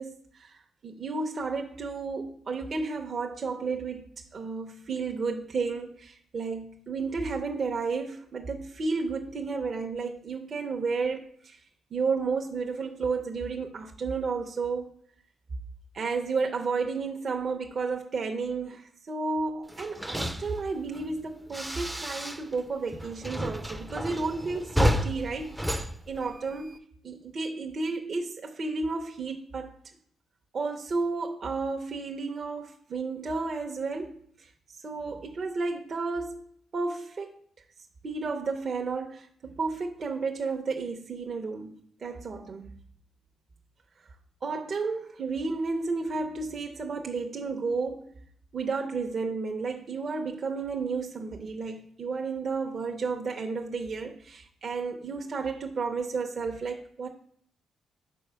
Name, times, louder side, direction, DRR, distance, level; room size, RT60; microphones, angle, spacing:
voice 1, 0.0-4.1 4.3-11.6 11.9-14.9 15.9-29.8 30.5-34.5 34.8-36.4 36.7-37.3 38.0-42.8 44.4-48.2 48.5-57.1, right 4 dB, 45° right, 0.7 m, -32 dB
sound 1, 19.7-22.6 22.9-26.8, equal, 5° right, 0.5 m, -31 dB
4.4 x 4.4 x 5.6 m
cardioid pair, 90°, 0 cm